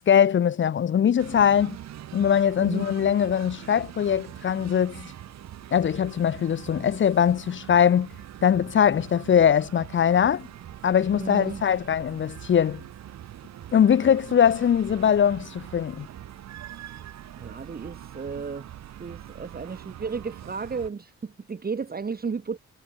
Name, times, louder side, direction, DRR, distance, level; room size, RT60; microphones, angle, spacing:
voice 1, 0.0-1.8 2.1-5.1 5.7-8.1 8.4-10.5 10.8-12.8 13.7-16.1, left 8 dB, 40° left, 0.7 m, -21 dB
sound 1, 1.2-20.9, right 11 dB, 65° right, 1.2 m, -43 dB
voice 2, 2.6-2.9 11.1-11.6 17.4-18.7 19.0-22.6, right 5 dB, 30° right, 2.0 m, -33 dB
cardioid pair, 90°, 30 cm